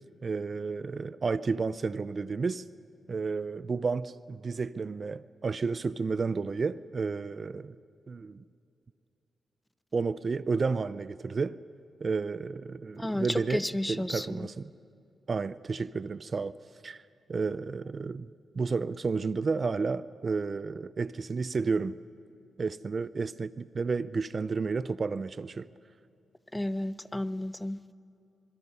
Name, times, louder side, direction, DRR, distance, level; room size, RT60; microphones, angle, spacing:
voice 1, 0.2-2.6 3.1-7.8 8.1-8.4 9.9-11.6 12.0-13.6 13.9-14.7 15.3-16.5 16.8-17.0 17.3-22.0 22.6-25.7, right 4 dB, 45° right, 0.4 m, -31 dB
voice 2, 12.9-14.5 26.5-27.9, left 1 dB, 10° left, 0.7 m, -32 dB
26.0 x 22.5 x 5.5 m
cardioid pair, 70°, 0 cm